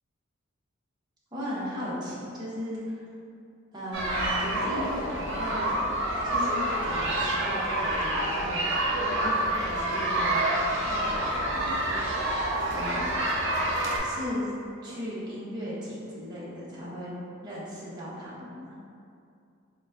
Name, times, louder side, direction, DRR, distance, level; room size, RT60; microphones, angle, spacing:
voice 1, 1.3-3.0 3.7-5.9 6.1-11.8 12.7-13.1 14.0-14.5 14.8-18.7, equal, 20° right, -9 dB, 0.9 m, -37 dB
sound 1, 3.9-14.0, right 1 dB, 60° right, 0.6 m, -28 dB
3.9 x 2.3 x 3.4 m, 2.5 s
head